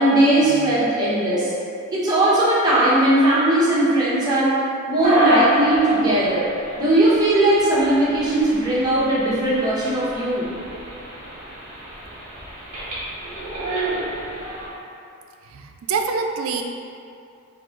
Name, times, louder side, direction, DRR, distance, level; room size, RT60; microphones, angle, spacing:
voice 1, 0.0-1.5 1.9-4.6 4.9-6.5 6.8-10.5, right 1 dB, 20° right, -9 dB, 1.0 m, -18 dB
sound 1, 5.0-14.7, equal, 35° right, 1.3 m, -28 dB
voice 2, 15.4-16.6, right 5 dB, 70° right, 4 dB, 0.3 m, -26 dB
3.8 x 2.7 x 3.8 m, 2.5 s
head